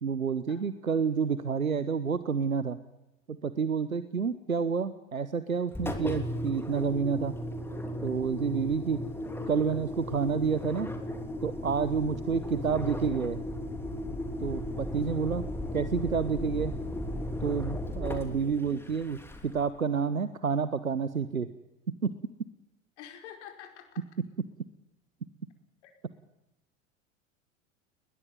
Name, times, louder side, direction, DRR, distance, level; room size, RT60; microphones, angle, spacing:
voice 1, 0.0-2.8 3.3-7.3 8.0-9.0 9.5-10.9 11.4-13.4 14.4-15.4 15.7-16.7 17.4-21.5 22.0-22.1, right 6 dB, 85° right, 14 dB, 1.1 m, -29 dB
Engine, 5.7-19.7, left 1 dB, 5° left, 3.1 m, -36 dB
voice 2, 14.9-15.3 23.0-24.0 25.8-25.9, left 9 dB, 55° left, 5 dB, 5.0 m, -48 dB
21.0 x 20.5 x 9.4 m, 0.96 s
figure-of-eight pair, 80°, 40 cm